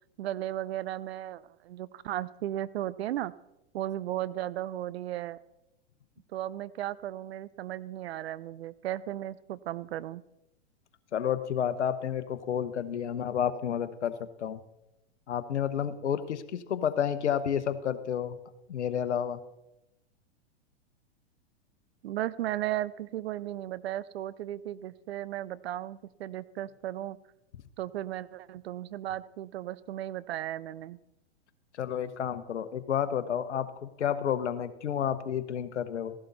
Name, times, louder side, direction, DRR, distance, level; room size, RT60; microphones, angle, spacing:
voice 1, 0.2-3.3 3.7-5.4 6.3-10.2 22.0-27.2 27.8-31.0, right 13 dB, 65° right, 19 dB, 0.6 m, -35 dB
voice 2, 11.1-14.6 15.3-18.4 18.7-19.4 31.8-36.1, left 9 dB, 80° left, 12 dB, 1.1 m, -30 dB
15.5 x 11.5 x 4.1 m, 0.91 s
hypercardioid pair, 110°, 34 cm